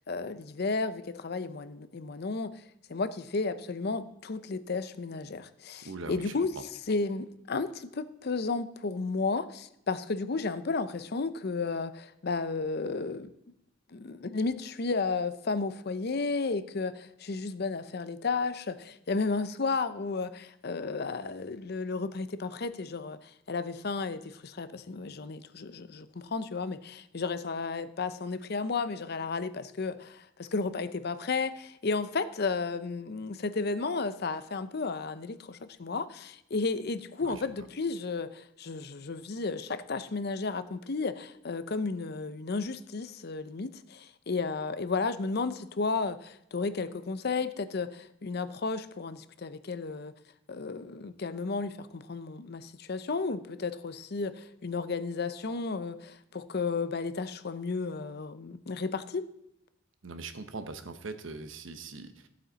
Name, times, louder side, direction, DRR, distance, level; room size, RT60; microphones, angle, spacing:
voice 1, 0.1-2.6 2.9-6.5 6.9-13.3 13.9-50.1 50.5-59.3, left 4 dB, 50° left, 13 dB, 0.6 m, -33 dB
voice 2, 5.8-6.3 37.2-37.4 60.0-62.3, right 3 dB, 70° right, 9 dB, 1.0 m, -41 dB
15.0 x 8.5 x 4.0 m, 0.80 s
head